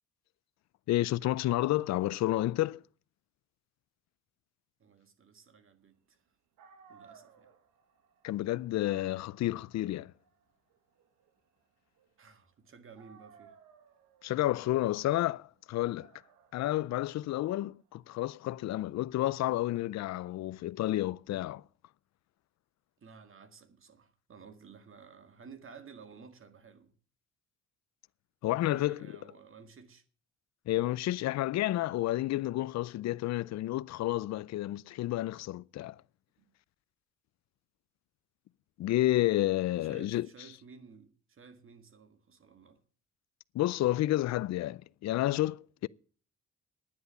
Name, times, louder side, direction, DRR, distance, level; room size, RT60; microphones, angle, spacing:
voice 1, 0.9-2.8 8.2-10.1 14.2-16.1 16.5-21.6 28.4-29.1 30.7-36.0 38.8-40.3 43.5-45.9, left 15 dB, 60° left, 0.5 m, -30 dB
voice 2, 4.8-6.2 6.9-7.5 12.2-13.5 23.0-26.9 28.4-30.0 36.4-36.5 39.8-42.8, right 5 dB, 45° right, 2.0 m, -54 dB
Dog, 6.3-6.4 6.6-12.6 13.0-19.7, right 6 dB, 90° right, 1.8 m, -61 dB
10.5 x 9.6 x 6.9 m
cardioid pair, 90°, 30 cm